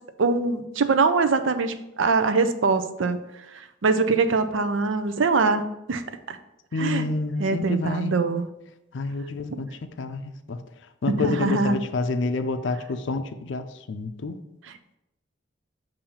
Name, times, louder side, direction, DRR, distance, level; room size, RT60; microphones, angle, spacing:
voice 1, 0.2-3.2 3.8-5.6 5.9-6.0 6.3-6.4 6.8-7.0 7.4-8.4 11.1-11.8, right 4 dB, 80° right, 9 dB, 0.5 m, -22 dB
voice 2, 6.7-8.1 8.9-9.7 10.0-10.2 10.5-10.6 11.0-14.4, left 3 dB, 70° left, 9 dB, 0.4 m, -28 dB
7.1 x 2.7 x 5.5 m, 0.87 s
head